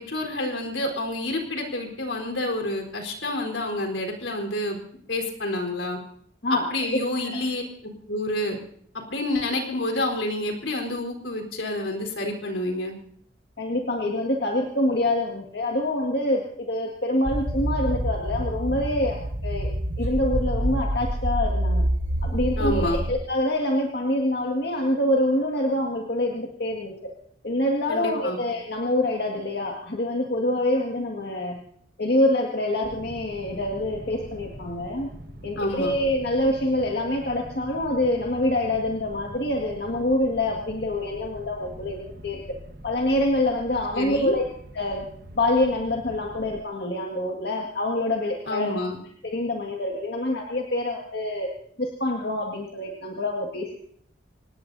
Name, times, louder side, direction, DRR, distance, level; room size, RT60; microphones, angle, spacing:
voice 1, 0.0-4.8 5.1-6.0 6.5-8.6 9.1-12.9 22.6-23.0 27.9-28.4 35.6-36.0 43.9-44.4 48.5-49.0, left 1 dB, 75° left, 3 dB, 4.1 m, -28 dB
voice 2, 6.9-7.4 13.6-21.9 22.2-27.1 27.4-31.6 32.0-35.1 35.4-42.6 42.8-44.4 44.7-45.1 45.4-48.7 49.2-51.5 51.8-53.7, left 1 dB, 55° left, 0 dB, 1.9 m, -26 dB
sound 1, 17.2-23.1, equal, 80° right, 2.2 m, -26 dB
sound 2, 32.8-46.6, equal, 50° right, 1.3 m, -43 dB
25.5 x 20.0 x 2.7 m, 0.64 s
head